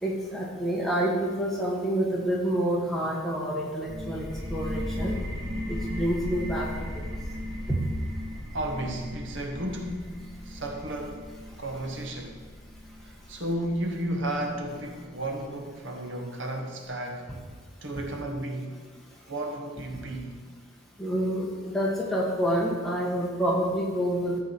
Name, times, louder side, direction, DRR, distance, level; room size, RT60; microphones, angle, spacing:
voice 1, 0.0-5.1 5.7-7.0 7.7-7.8 21.0-24.4, equal, ahead, 1.6 m, -28 dB
sound 1, 3.9-15.3, left 1 dB, 25° right, 3.2 m, -37 dB
voice 2, 8.5-10.1 10.4-11.3 11.6-12.4 13.0-17.4 17.8-18.8 19.3-20.4, right 1 dB, 55° right, 1.1 m, -33 dB
13.5 x 4.7 x 7.2 m
head